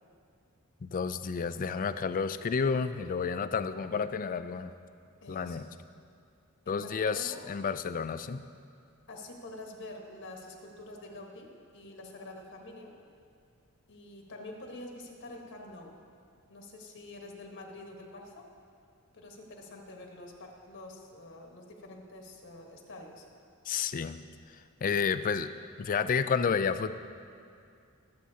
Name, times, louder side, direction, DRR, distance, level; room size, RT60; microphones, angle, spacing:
voice 1, 0.8-4.7 5.3-5.7 6.7-8.4 23.7-24.2 24.8-25.5 25.8-26.9, left 5 dB, 40° left, 12 dB, 0.4 m, -30 dB
voice 2, 5.2-5.7 6.6-7.5 9.1-12.9 13.9-16.0 16.5-18.5 19.1-23.2, left 2 dB, 60° left, 1 dB, 1.4 m, -47 dB
22.5 x 7.7 x 2.8 m, 2.4 s
head